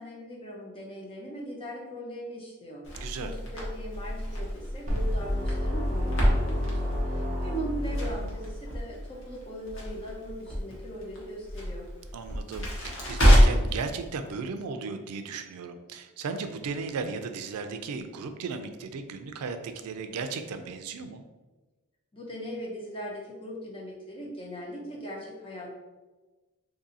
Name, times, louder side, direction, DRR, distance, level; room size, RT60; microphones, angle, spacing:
voice 1, 0.0-11.9 22.1-25.7, equal, 25° left, -3 dB, 0.6 m, -39 dB
Crackle, 2.8-13.8, equal, 60° left, 0.9 m, -27 dB
voice 2, 2.9-3.3 12.1-21.2, right 4 dB, 90° right, 8 dB, 0.4 m, -35 dB
sound 1, 4.9-8.9, left 1 dB, 35° right, 0.8 m, -30 dB
2.7 x 2.6 x 3.9 m, 1.2 s
head